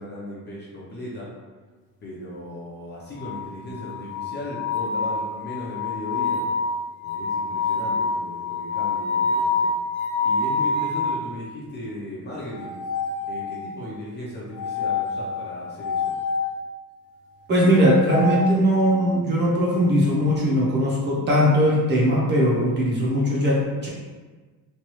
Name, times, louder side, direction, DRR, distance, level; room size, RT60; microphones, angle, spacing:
voice 1, 0.0-1.3 2.0-6.4 7.0-9.7 10.2-12.8 13.3-16.1, left 1 dB, 25° left, -6 dB, 0.5 m, -36 dB
sound 1, 3.2-11.3 12.5-13.8 14.5-16.5 17.7-19.1, left 4 dB, 65° left, 0.8 m, -27 dB
voice 2, 17.5-23.9, equal, 25° right, -5 dB, 0.6 m, -20 dB
3.1 x 2.2 x 3.0 m, 1.3 s
cardioid pair, 165°, 39 cm